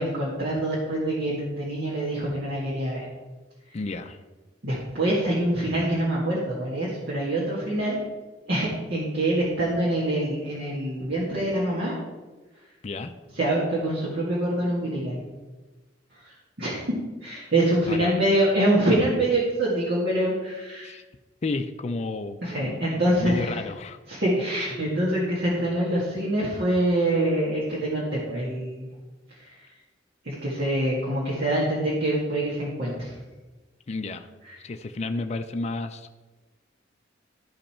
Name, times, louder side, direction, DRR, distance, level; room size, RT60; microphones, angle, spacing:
voice 1, 0.0-3.1 4.6-8.0 8.5-11.9 13.4-15.2 16.2-16.8 17.2-20.9 22.4-23.6 24.1-28.9 29.4-29.5 30.2-33.2 34.5-34.6, right 1 dB, 60° right, -6 dB, 1.9 m, -25 dB
voice 2, 3.7-4.2 12.8-13.1 17.9-18.2 20.8-21.0 21.4-22.8 23.1-24.0 33.9-34.3 34.6-36.2, left 3 dB, 35° left, 7 dB, 0.4 m, -32 dB
13.0 x 5.4 x 4.4 m, 1.2 s
head